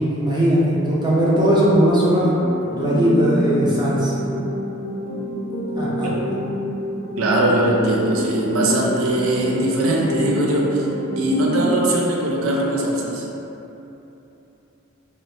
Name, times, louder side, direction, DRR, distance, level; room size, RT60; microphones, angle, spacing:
voice 1, 0.0-2.3 2.7-4.1 5.7-6.1, equal, 20° right, -8 dB, 0.6 m, -18 dB
sound 1, 1.9-11.9, equal, 75° left, 0.6 m, -28 dB
voice 2, 7.2-10.9 11.2-13.2, right 1 dB, 80° right, -2 dB, 0.5 m, -20 dB
2.7 x 2.5 x 3.3 m, 3.0 s
head